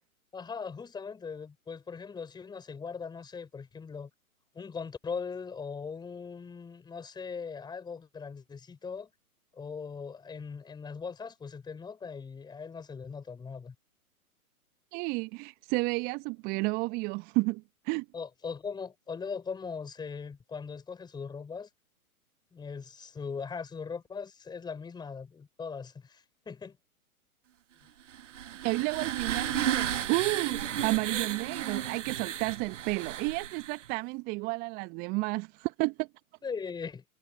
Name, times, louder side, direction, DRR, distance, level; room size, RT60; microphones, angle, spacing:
voice 1, 0.3-4.1 4.5-9.1 9.5-13.7 18.1-21.7 22.5-26.8 36.4-37.0, left 5 dB, 10° left, 5.6 m, -40 dB
voice 2, 14.9-18.1 28.6-36.1, right 26 dB, 20° right, 0.9 m, -31 dB
sound 1, 28.1-33.9, right 10 dB, 55° right, 1.2 m, -34 dB
figure-of-eight pair, 120°, 44 cm